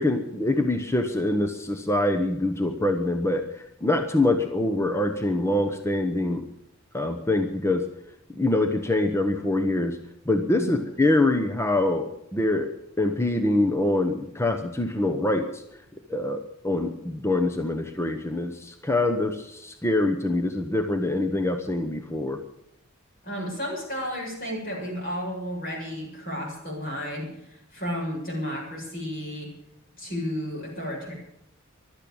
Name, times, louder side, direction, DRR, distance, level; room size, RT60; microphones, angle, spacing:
voice 1, 0.0-6.5 6.9-7.8 8.3-10.0 10.2-12.7 13.0-15.6 16.1-22.4, left 2 dB, 10° left, 6 dB, 1.0 m, -25 dB
voice 2, 23.2-29.5 30.0-31.1, equal, 40° left, -2 dB, 7.4 m, -32 dB
15.0 x 12.0 x 7.1 m, 0.79 s
head